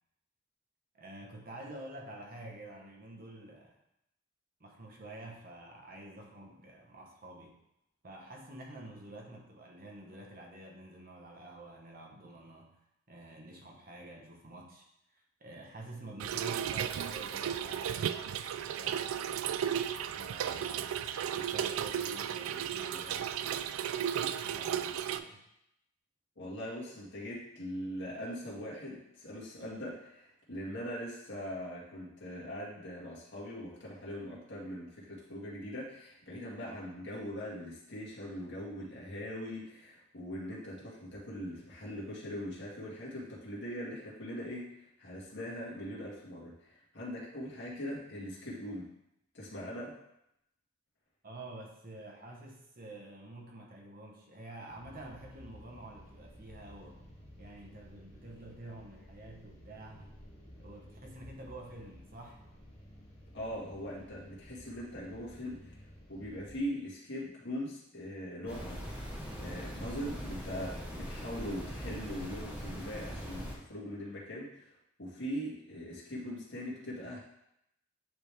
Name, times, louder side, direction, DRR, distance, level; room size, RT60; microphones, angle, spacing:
voice 1, 0.9-3.8 4.6-7.6 8.0-12.8 13.1-14.9 15.4-19.5 20.2-21.0 21.3-23.9 24.3-25.4 51.2-57.0 57.4-60.1 60.6-62.4, right 2 dB, 45° right, 0 dB, 1.0 m, -49 dB
Trickle dribble / Fill (with liquid), 16.2-25.2, right 9 dB, 75° right, 0.3 m, -34 dB
voice 2, 26.4-48.9 49.3-49.9 63.3-65.8 66.1-68.8 69.4-74.7 75.0-77.2, equal, 55° left, -5 dB, 1.8 m, -41 dB
sound 1, 54.7-66.6, equal, 25° left, 2.0 m, -54 dB
sound 2, 68.5-73.6, equal, 5° right, 0.8 m, -41 dB
9.2 x 3.3 x 3.4 m, 0.81 s
head